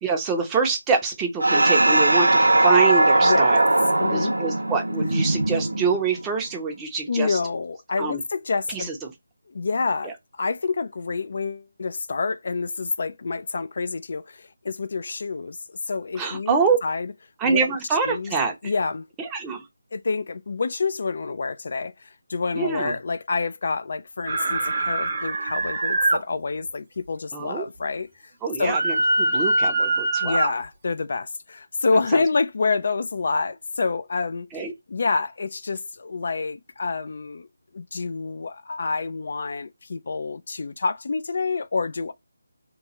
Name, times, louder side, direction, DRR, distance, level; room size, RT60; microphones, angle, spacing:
voice 1, 0.0-3.7 4.1-7.4 8.0-8.2 8.7-9.1 10.0-10.1 16.1-16.8 17.4-18.5 19.2-19.6 22.5-23.0 27.3-27.6 28.4-30.5 32.1-32.2 34.5-34.7, right 5 dB, 10° right, 0.6 m, -25 dB
sound 1, 1.4-6.2, right 2 dB, 90° right, 0.4 m, -19 dB
voice 2, 4.0-4.3 7.1-8.9 9.5-10.1 10.4-17.1 17.4-17.6 18.1-18.3 18.6-19.1 19.9-28.1 28.6-28.8 30.2-34.5 34.9-37.5 37.7-42.1, left 4 dB, 55° left, 0.4 m, -27 dB
sound 2, 24.3-26.2 28.7-30.5, right 2 dB, 50° right, 0.9 m, -23 dB
3.0 x 2.3 x 2.7 m
figure-of-eight pair, 160°, 0 cm